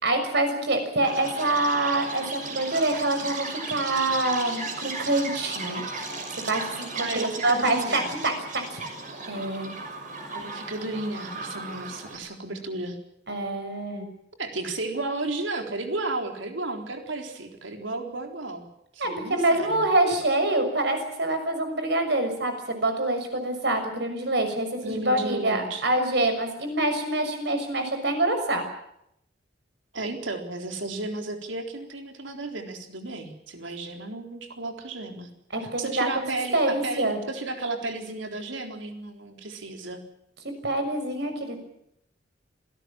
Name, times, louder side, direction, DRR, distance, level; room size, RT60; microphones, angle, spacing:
voice 1, 0.0-5.8 6.4-6.9 7.1-8.8 9.3-9.7 13.3-14.1 19.0-28.6 35.5-36.2 36.5-37.2 40.6-41.6, right 2 dB, 60° right, 7 dB, 6.4 m, -26 dB
Chirp tweet, 1.0-12.2, right 3 dB, 45° right, 6.2 m, -35 dB
voice 2, 7.0-8.1 10.3-13.0 14.4-18.7 18.9-19.8 24.8-25.8 29.9-35.3 35.6-40.0, right 2 dB, 85° right, 4 dB, 3.9 m, -33 dB
27.5 x 18.0 x 7.4 m, 0.77 s
head